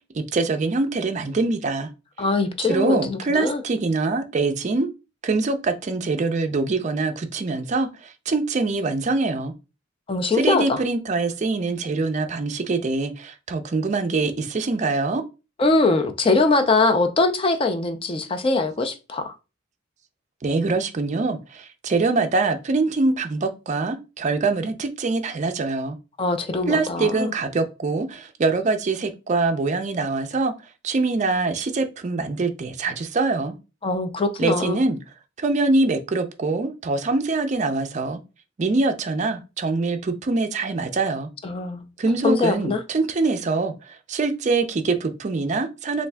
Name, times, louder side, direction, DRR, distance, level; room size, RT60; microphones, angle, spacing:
voice 1, 0.1-1.9 2.7-4.9 5.2-9.5 10.3-15.2 20.4-26.0 26.7-30.5 30.8-33.6 34.4-35.0 35.4-38.2 38.6-41.3 42.0-46.1, right 3 dB, 35° right, 0.4 m, -24 dB
voice 2, 2.2-3.6 10.1-10.8 15.6-19.3 26.2-27.3 33.8-34.8 41.4-41.9 42.2-42.8, left 3 dB, 25° left, 0.4 m, -22 dB
3.4 x 2.5 x 3.3 m
head